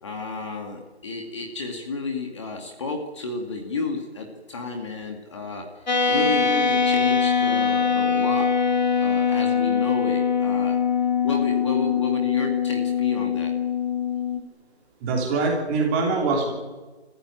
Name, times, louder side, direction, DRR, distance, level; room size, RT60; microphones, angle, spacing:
voice 1, 0.0-5.6 6.1-8.5 9.0-10.8 11.2-13.5, left 4 dB, 25° left, 2 dB, 2.2 m, -31 dB
sound 1, 5.9-14.4, left 6 dB, 45° left, 2.1 m, -22 dB
voice 2, 15.0-16.5, right 3 dB, 10° right, -1 dB, 3.2 m, -23 dB
30.0 x 15.0 x 9.1 m, 1.2 s
figure-of-eight pair, 170°, 32 cm